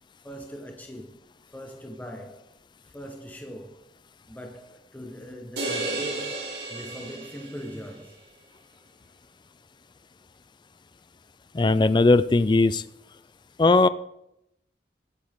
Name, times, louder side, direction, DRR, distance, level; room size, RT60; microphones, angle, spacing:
voice 1, 0.2-1.2 1.5-2.6 2.8-3.9 4.3-8.2, equal, 10° left, 1.1 m, -41 dB
sound 1, 5.6-7.9, right 2 dB, 65° right, 3.0 m, -33 dB
voice 2, 11.5-12.8 13.6-13.9, left 3 dB, 25° left, 0.4 m, -18 dB
22.0 x 8.6 x 3.7 m
head